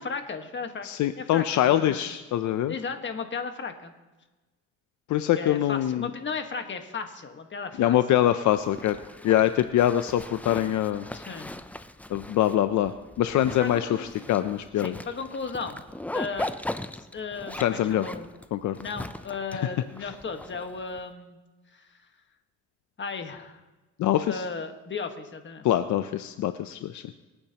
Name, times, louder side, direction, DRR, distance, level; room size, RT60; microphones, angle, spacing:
voice 1, 0.0-0.9 1.2-2.1 2.7-3.9 5.3-8.0 11.1-11.5 13.6-14.1 14.8-15.8 16.1-16.5 17.1-18.3 18.8-21.4 21.7-22.0 23.0-23.6 24.3-25.7, left 5 dB, 40° left, 6 dB, 1.5 m, -35 dB
voice 2, 0.8-2.7 5.1-6.1 7.8-9.0 9.2-11.1 12.1-12.9 13.2-15.0 17.6-18.1 18.5-18.8 24.0-24.4 25.6-27.0, left 12 dB, 70° left, 10 dB, 0.6 m, -24 dB
Zipper (clothing), 8.5-21.0, left 1 dB, 5° left, 0.5 m, -39 dB
25.5 x 8.9 x 2.9 m, 1.2 s
cardioid pair, 90°, 30 cm